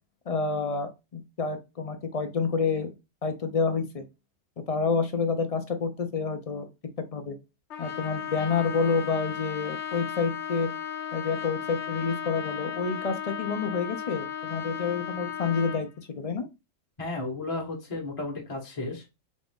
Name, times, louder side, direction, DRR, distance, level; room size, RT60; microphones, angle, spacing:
voice 1, 0.3-2.9 3.2-4.0 4.7-6.7 7.1-7.4 7.8-10.7 11.1-16.5, left 5 dB, 45° left, 7 dB, 0.4 m, -28 dB
Trumpet, 7.7-15.9, left 8 dB, 65° left, 1.0 m, -35 dB
voice 2, 17.0-19.3, left 2 dB, 30° left, -1 dB, 1.0 m, -34 dB
4.2 x 2.5 x 3.5 m, 0.24 s
omnidirectional pair, 1.3 m